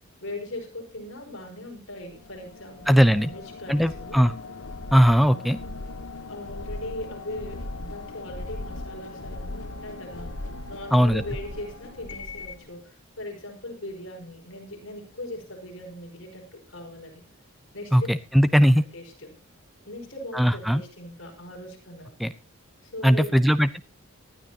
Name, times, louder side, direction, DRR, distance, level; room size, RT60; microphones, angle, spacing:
voice 1, 0.2-4.2 5.2-5.7 6.3-17.3 17.7-18.1 18.9-19.3 19.8-22.1 22.8-23.5, left 1 dB, 60° left, 1 dB, 5.4 m, -39 dB
sound 1, 2.1-12.7, left 2 dB, 80° left, 1.1 m, -38 dB
voice 2, 2.9-3.3 3.7-4.3 4.9-5.6 10.9-11.2 17.9-18.8 20.3-20.8 22.2-22.3 23.0-23.8, equal, ahead, 12 dB, 0.7 m, -19 dB
19.5 x 12.5 x 2.9 m, 0.32 s
head